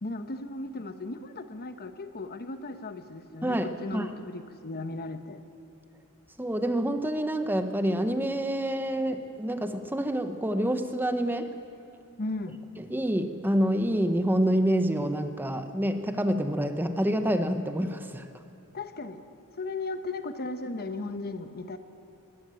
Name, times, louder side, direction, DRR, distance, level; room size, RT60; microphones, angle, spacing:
voice 1, 0.0-5.4 12.2-12.6 18.7-19.3 19.6-21.8, left 2 dB, 45° left, 9 dB, 1.0 m, -36 dB
voice 2, 3.4-4.1 6.4-11.5 12.8-18.3, right 1 dB, 10° right, 8 dB, 0.9 m, -27 dB
21.5 x 15.0 x 9.0 m, 2.6 s
head